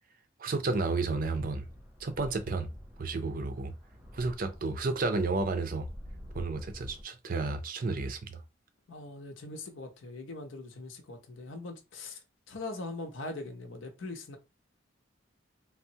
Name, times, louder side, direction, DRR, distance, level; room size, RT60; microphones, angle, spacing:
voice 1, 0.4-1.6 2.0-2.7 3.0-3.7 4.1-5.9 6.3-8.4, right 3 dB, 45° right, 0.4 m, -31 dB
sound 1, 1.1-7.0, equal, 5° right, 0.7 m, -48 dB
voice 2, 8.9-12.2 12.5-14.4, left 2 dB, 85° left, 0.6 m, -41 dB
3.3 x 2.0 x 2.7 m
head